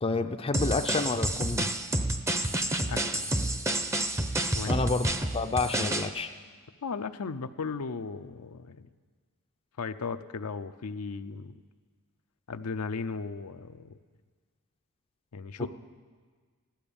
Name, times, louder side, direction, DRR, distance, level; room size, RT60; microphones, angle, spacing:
voice 1, 0.0-1.7 4.7-5.1 5.3-6.3 15.6-15.7, left 3 dB, 25° left, 7 dB, 0.5 m, -29 dB
sound 1, 0.5-6.1, right 1 dB, 15° right, 0.6 m, -29 dB
voice 2, 2.9-3.3 4.5-4.8 6.8-8.9 9.8-11.5 12.5-13.9 15.3-15.7, left 4 dB, 80° left, 9 dB, 0.6 m, -36 dB
15.0 x 12.0 x 7.0 m, 1.5 s
head